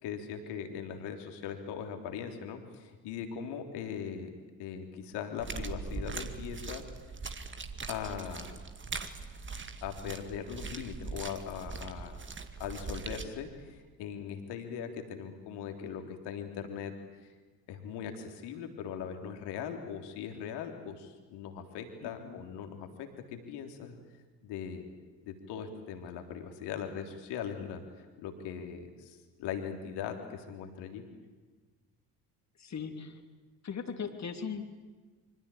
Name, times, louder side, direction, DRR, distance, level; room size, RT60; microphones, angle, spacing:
voice 1, 0.0-4.3 4.6-6.8 7.9-8.6 9.8-12.1 12.6-16.9 17.2-17.3 17.7-24.0 24.4-24.9 25.2-27.8 28.2-31.0, left 8 dB, 60° left, 5 dB, 3.6 m, -40 dB
sound 1, 5.4-13.3, right 4 dB, 25° right, 2.2 m, -41 dB
voice 2, 22.0-22.5 32.6-33.2 33.6-34.7, left 6 dB, 35° left, 7 dB, 3.2 m, -39 dB
26.0 x 25.0 x 8.7 m, 1.4 s
figure-of-eight pair, 50°, 45 cm